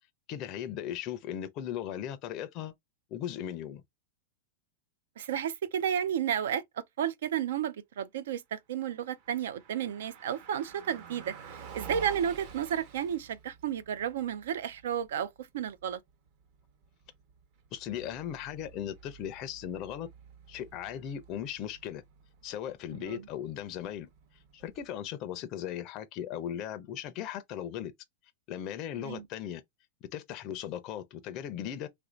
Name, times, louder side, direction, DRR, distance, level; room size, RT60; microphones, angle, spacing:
voice 1, 0.3-2.7 3.1-3.8 17.7-20.1 20.5-22.0 22.4-24.1 24.5-27.9 28.5-29.6 30.1-31.9, left 10 dB, 35° left, 0.4 m, -37 dB
voice 2, 5.2-16.0 22.9-23.3 29.0-29.2, right 9 dB, 80° right, 0.4 m, -32 dB
Car passing by, 8.9-25.1, right 6 dB, 45° right, 0.8 m, -51 dB
3.2 x 2.5 x 3.1 m
supercardioid pair, 155°, 0 cm